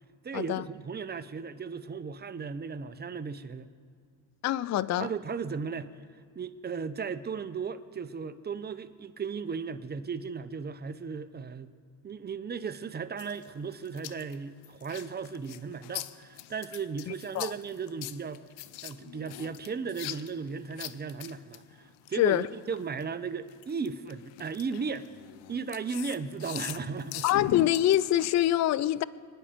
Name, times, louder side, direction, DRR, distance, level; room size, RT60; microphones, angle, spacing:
voice 1, 0.2-3.7 5.0-5.9 6.3-11.7 12.0-18.4 18.8-25.1 25.5-27.3, right 5 dB, 20° right, 12 dB, 0.7 m, -36 dB
voice 2, 4.4-5.1 17.3-17.5 22.2-22.5 27.2-29.0, left 13 dB, 35° left, 19 dB, 0.4 m, -25 dB
sound 1, 13.2-23.0 23.5-28.5, left 14 dB, 90° left, 0.7 m, -42 dB
25.0 x 10.0 x 5.2 m, 2.1 s
supercardioid pair, 90°, 49 cm